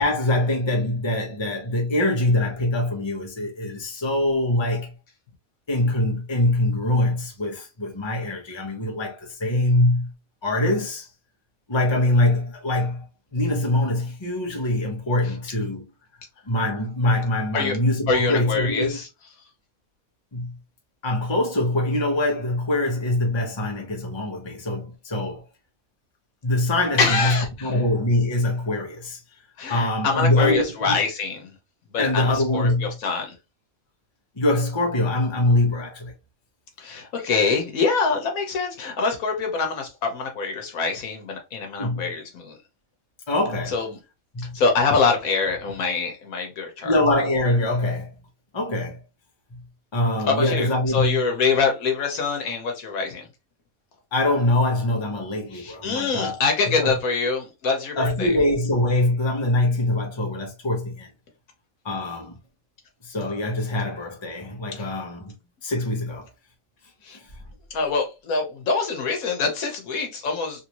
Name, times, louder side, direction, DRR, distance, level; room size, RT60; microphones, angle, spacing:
voice 1, 0.0-4.9 5.7-10.1 10.4-11.1 11.7-13.0 13.3-15.9 16.5-19.0 20.3-20.6 21.0-25.4 26.4-29.2 29.7-31.0 32.0-33.0 34.4-36.1 41.8-42.1 43.3-43.8 44.3-44.6 46.8-48.1 48.5-49.0 49.5-49.6 49.9-51.3 54.1-56.9 58.0-61.1 61.8-62.4 63.0-65.3 65.6-66.3, left 1 dB, 20° left, 0.9 m, -23 dB
voice 2, 18.1-19.1 27.0-27.8 29.6-31.5 31.9-33.3 36.8-42.5 43.7-44.0 44.5-46.9 50.2-53.3 55.5-58.3 64.8-64.9 67.0-67.2 67.7-70.7, left 4 dB, 85° left, 1.4 m, -25 dB
3.3 x 2.7 x 2.9 m
omnidirectional pair, 1.4 m